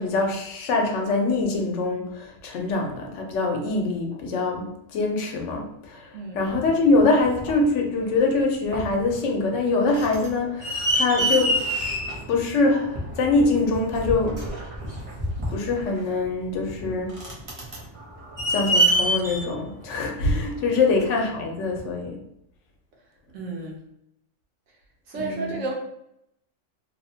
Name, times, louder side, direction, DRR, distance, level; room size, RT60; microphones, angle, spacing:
voice 1, 0.0-11.6 12.3-14.4 15.5-17.2 18.5-22.2 25.1-25.6, left 3 dB, 80° left, 2 dB, 0.9 m, -24 dB
sound 1, 6.5-7.7 8.3-8.4 8.7-9.2 9.5-21.0 21.8-21.9, right 1 dB, 35° right, 0.6 m, -27 dB
voice 2, 23.3-23.8 25.1-25.7, right 2 dB, 85° right, -1 dB, 1.1 m, -32 dB
2.7 x 2.0 x 2.7 m, 0.79 s
omnidirectional pair, 1.3 m